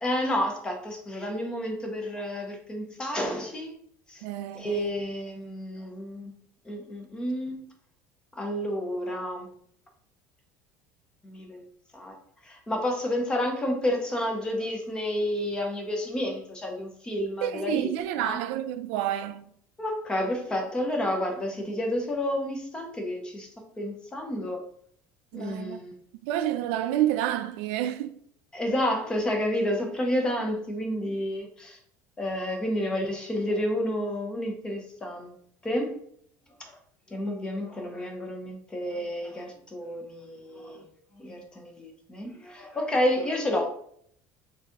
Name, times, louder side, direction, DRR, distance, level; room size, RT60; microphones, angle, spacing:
voice 1, 0.0-3.7 4.1-4.2 4.5-6.3 6.7-7.6 8.4-9.5 11.2-11.6 11.9-12.2 12.5-17.9 18.2-18.4 19.8-23.5 23.8-24.6 25.3-26.0 28.5-31.8 32.2-35.3 35.6-36.0 36.6-36.8 37.1-40.8 41.2-43.6, left 1 dB, 15° left, 0.7 m, -30 dB
voice 2, 4.2-4.9 17.4-19.4 25.3-25.8 26.2-28.2, right 12 dB, 85° right, 0.3 m, -29 dB
3.9 x 2.7 x 3.5 m
cardioid pair, 170°, 7 cm